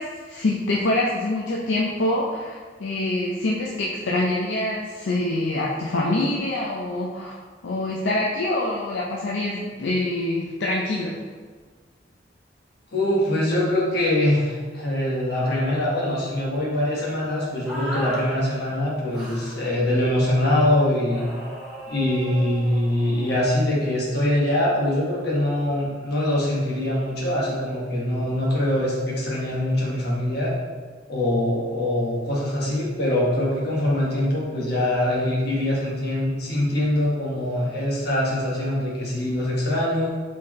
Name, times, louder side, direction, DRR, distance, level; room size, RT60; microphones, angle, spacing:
voice 1, 0.0-11.2, left 2 dB, 80° left, -3 dB, 0.5 m, -25 dB
voice 2, 12.9-21.3 21.9-30.5 31.1-40.1, left 1 dB, 60° left, -5 dB, 1.3 m, -23 dB
sound 1, 17.6-18.3 19.1-19.6 21.1-23.4, equal, 5° right, 1.2 m, -36 dB
4.2 x 3.9 x 3.1 m, 1.5 s
head